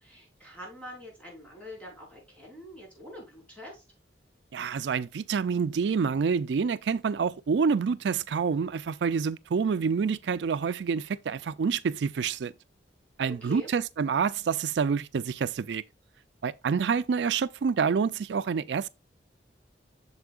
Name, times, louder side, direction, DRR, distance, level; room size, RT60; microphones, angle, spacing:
voice 1, 0.0-3.8 13.3-13.7, left 1 dB, 10° left, 4.9 m, -45 dB
voice 2, 4.5-12.5 13.2-15.8 16.4-18.9, right 6 dB, 75° right, 0.4 m, -27 dB
8.1 x 6.8 x 2.4 m
head